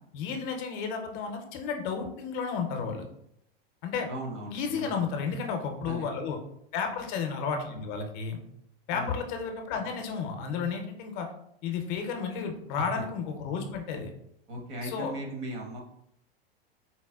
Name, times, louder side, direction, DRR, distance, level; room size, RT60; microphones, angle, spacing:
voice 1, 0.1-3.1 3.8-4.1 4.5-6.4 6.7-8.4 8.9-11.3 11.6-14.1 14.8-15.1, left 5 dB, 50° left, 4 dB, 0.6 m, -32 dB
voice 2, 4.1-5.0 5.8-6.1 8.9-9.2 12.7-13.0 14.5-15.8, equal, 45° right, 1 dB, 0.9 m, -37 dB
4.0 x 2.0 x 2.2 m, 0.73 s
hypercardioid pair, 120°, 31 cm